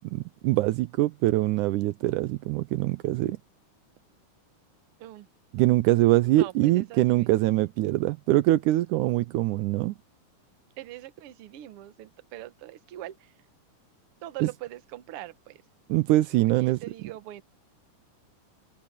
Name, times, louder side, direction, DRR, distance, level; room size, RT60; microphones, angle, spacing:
voice 1, 0.1-3.4 5.5-10.0 14.4-14.5 15.9-16.8, right 16 dB, 80° right, 2.0 m, -23 dB
voice 2, 6.3-7.3 10.8-13.3 14.2-15.6 16.6-17.4, right 14 dB, 60° right, 1.6 m, -42 dB
omnidirectional pair, 3.8 m